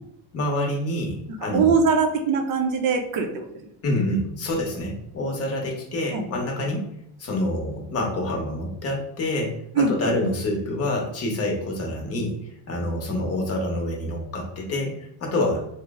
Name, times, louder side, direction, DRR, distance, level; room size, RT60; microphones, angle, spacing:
voice 1, 0.3-1.8 3.8-6.9 7.2-12.4 12.7-14.9 15.2-15.6, left 1 dB, 30° left, 0 dB, 0.7 m, -27 dB
voice 2, 1.5-3.5 6.1-6.2 9.8-10.2, right 5 dB, 45° right, 5 dB, 0.5 m, -22 dB
2.9 x 2.0 x 3.4 m, 0.76 s
cardioid pair, 150°, 46 cm